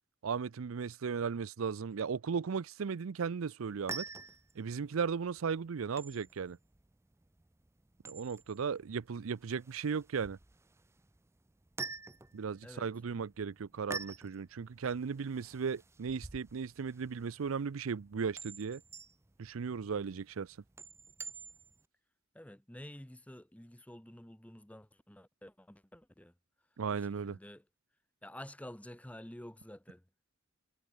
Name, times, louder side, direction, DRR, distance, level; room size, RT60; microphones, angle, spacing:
voice 1, 0.2-4.1 4.6-6.6 8.0-10.4 12.3-18.8 19.4-20.6 26.8-27.4, right 6 dB, 90° right, 0.5 m, -36 dB
sound 1, 3.6-21.9, right 4 dB, 15° right, 0.6 m, -49 dB
voice 2, 22.3-26.3 26.9-27.6 28.2-30.0, left 1 dB, 5° left, 1.0 m, -50 dB
head